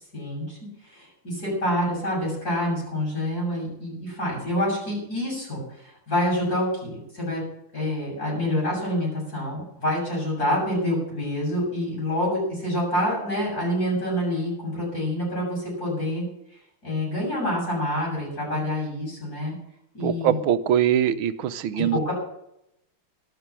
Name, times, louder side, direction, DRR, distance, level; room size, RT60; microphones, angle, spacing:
voice 1, 0.1-0.6 0.9-5.6 6.1-7.4 7.7-16.3 16.8-19.5 19.9-20.4 21.7-22.1, left 1 dB, 40° left, -4 dB, 8.0 m, -27 dB
voice 2, 20.0-22.1, right 10 dB, 75° right, 11 dB, 1.6 m, -23 dB
13.0 x 12.0 x 6.2 m, 0.79 s
omnidirectional pair, 2.4 m